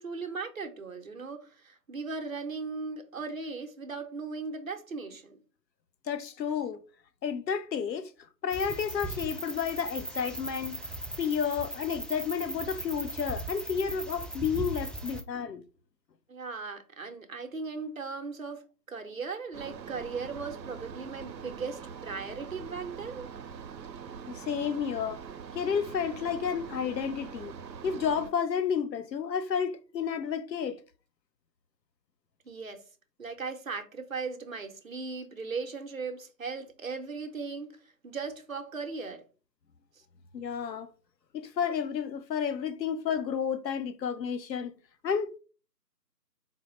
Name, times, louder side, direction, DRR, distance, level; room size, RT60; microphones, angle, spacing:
voice 1, 0.0-5.4 16.3-23.3 32.5-32.8 33.2-39.2, right 4 dB, 55° right, 0.6 m, -38 dB
voice 2, 6.1-6.8 7.2-8.1 8.4-10.8 11.2-15.6 24.3-25.2 25.5-27.5 27.8-30.8 40.3-40.9 41.3-44.7 45.0-45.3, left 7 dB, 80° left, 0.6 m, -31 dB
sound 1, 8.5-15.2, right 2 dB, ahead, 0.3 m, -38 dB
sound 2, 19.5-28.3, right 6 dB, 90° right, 0.6 m, -43 dB
4.4 x 2.0 x 3.0 m
figure-of-eight pair, 180°, 50 cm